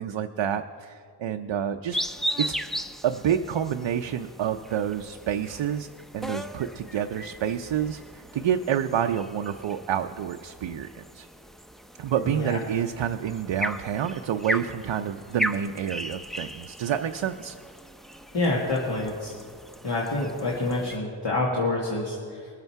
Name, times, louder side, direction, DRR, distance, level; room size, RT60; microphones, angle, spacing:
voice 1, 0.0-2.0 2.4-2.6 3.0-5.9 6.1-11.3 12.0-17.5, right 9 dB, 75° right, 5 dB, 0.6 m, -28 dB
sound 1, 1.9-21.0, equal, ahead, 0.5 m, -37 dB
voice 2, 12.2-12.6 18.3-19.3 19.8-22.5, left 2 dB, 60° left, -5 dB, 2.0 m, -27 dB
21.0 x 8.0 x 4.6 m, 2.2 s
cardioid pair, 55°, 47 cm